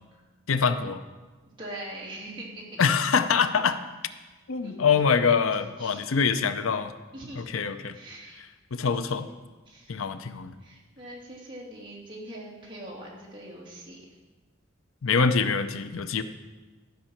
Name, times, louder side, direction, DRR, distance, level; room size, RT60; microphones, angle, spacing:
voice 1, 0.5-1.0 2.8-3.8 4.5-6.9 7.4-8.0 8.7-9.3 9.9-10.5 15.0-16.2, left 5 dB, 90° left, 11 dB, 0.6 m, -24 dB
voice 2, 1.5-2.9 4.6-5.1 5.8-6.0 7.1-7.5 7.9-8.4 9.1-9.4 9.7-10.0 10.6-14.1, right 1 dB, 25° right, -5 dB, 2.8 m, -42 dB
13.0 x 5.6 x 7.2 m, 1.3 s
head